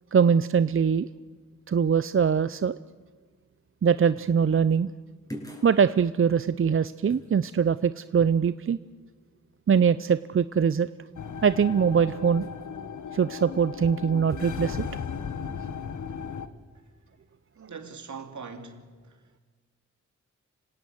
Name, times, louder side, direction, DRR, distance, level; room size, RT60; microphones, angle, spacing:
voice 1, 0.1-1.1 1.7-2.8 3.8-4.9 5.6-8.8 9.7-10.9 11.4-12.4 13.1-14.9, right 7 dB, 45° right, 0.6 m, -22 dB
sound 1, 4.1-4.4 5.3-5.8 7.1-7.3 12.4-12.7 14.3-14.6, equal, 10° left, 7.5 m, -42 dB
sound 2, 11.1-16.5, left 7 dB, 75° left, 1.4 m, -36 dB
voice 2, 17.5-19.4, right 5 dB, 70° right, 2.7 m, -42 dB
26.5 x 17.5 x 8.1 m
cardioid pair, 50°, 31 cm